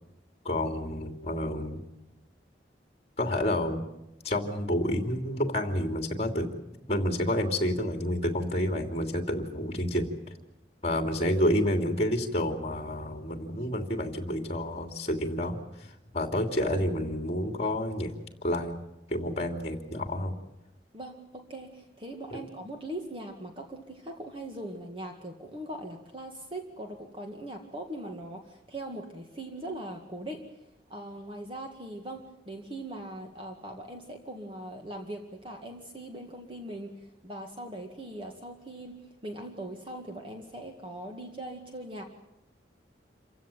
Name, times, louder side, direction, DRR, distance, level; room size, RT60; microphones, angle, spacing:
voice 1, 0.4-1.8 3.2-3.8 4.2-6.5 6.9-10.1 10.8-18.1 18.4-18.8 19.1-20.3 22.3-22.4, left 1 dB, 35° left, 5 dB, 2.9 m, -29 dB
voice 2, 20.9-30.6 30.9-42.0, right 1 dB, 30° right, 3 dB, 2.0 m, -41 dB
27.5 x 16.0 x 9.1 m, 0.93 s
head